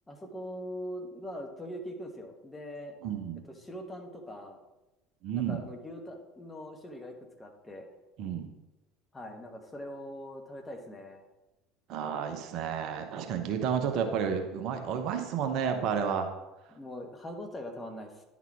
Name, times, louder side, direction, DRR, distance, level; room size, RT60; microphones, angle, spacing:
voice 1, 0.1-2.9 3.4-4.6 5.3-7.9 9.1-11.2 16.7-18.2, equal, 15° left, 3 dB, 1.3 m, -42 dB
voice 2, 3.0-3.4 5.2-5.6 8.2-8.5 11.9-16.3, right 7 dB, 50° right, 5 dB, 0.8 m, -31 dB
10.5 x 4.1 x 4.3 m, 1.0 s
figure-of-eight pair, 70°, 0 cm